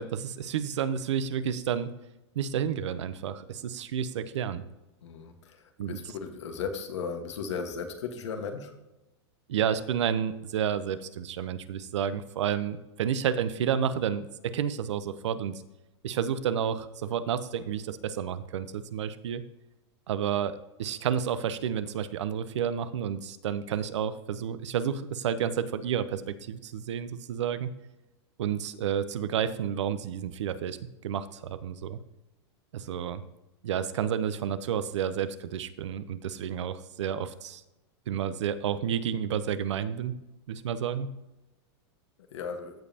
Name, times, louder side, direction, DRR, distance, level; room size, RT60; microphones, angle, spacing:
voice 1, 0.0-1.9 2.3-4.6 5.8-6.0 9.5-15.6 16.0-19.4 20.1-27.7 28.4-30.8 31.0-32.0 32.7-33.2 33.6-37.6 38.1-40.2 40.5-41.1, right 8 dB, 85° right, 13 dB, 0.8 m, -30 dB
voice 2, 5.0-8.7 42.3-42.7, left 5 dB, 80° left, 6 dB, 1.5 m, -36 dB
15.0 x 5.3 x 2.9 m, 0.98 s
supercardioid pair, 140°, 15 cm